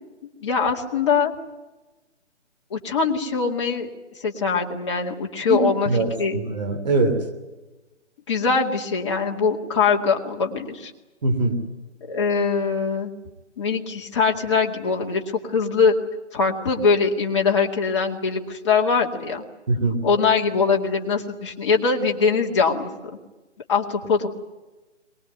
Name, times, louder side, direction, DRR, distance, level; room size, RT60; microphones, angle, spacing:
voice 1, 0.4-1.3 2.7-3.9 4.2-5.9 6.2-6.4 8.3-10.9 12.1-13.1 13.6-15.2 15.5-15.9 16.3-19.4 20.0-22.9 23.7-24.3, left 5 dB, 25° left, 0 dB, 2.3 m, -22 dB
voice 2, 5.5-7.2 11.2-11.6 19.7-20.0, right 2 dB, 35° right, 6 dB, 3.1 m, -22 dB
23.5 x 19.5 x 9.3 m, 1.1 s
hypercardioid pair, 170°, 36 cm